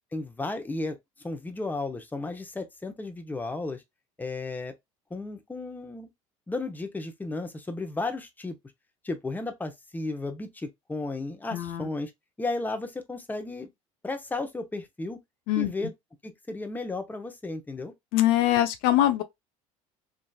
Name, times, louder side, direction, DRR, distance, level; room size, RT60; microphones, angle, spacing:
voice 1, 0.1-1.0 1.2-3.8 4.2-4.7 5.1-6.1 6.5-8.6 9.0-12.1 12.4-13.7 14.0-15.2 15.6-15.9 16.2-17.9, left 2 dB, 10° left, 0.7 m, -34 dB
voice 2, 11.5-11.9 15.5-15.7 18.1-19.2, left 13 dB, 60° left, 0.5 m, -23 dB
3.1 x 2.5 x 2.2 m
hypercardioid pair, 75°, 17 cm